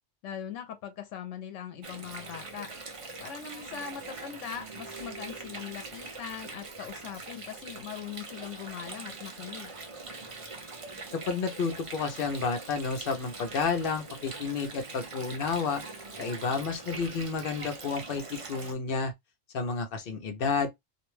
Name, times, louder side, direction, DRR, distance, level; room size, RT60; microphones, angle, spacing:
voice 1, 0.2-2.7 3.2-9.7, left 8 dB, 80° left, 0.9 m, -41 dB
Water, 1.8-18.7, right 3 dB, 40° right, 0.5 m, -43 dB
voice 2, 11.1-15.8 16.2-19.1 19.5-20.7, left 5 dB, 60° left, 0.7 m, -31 dB
2.5 x 2.1 x 3.0 m
omnidirectional pair, 1.2 m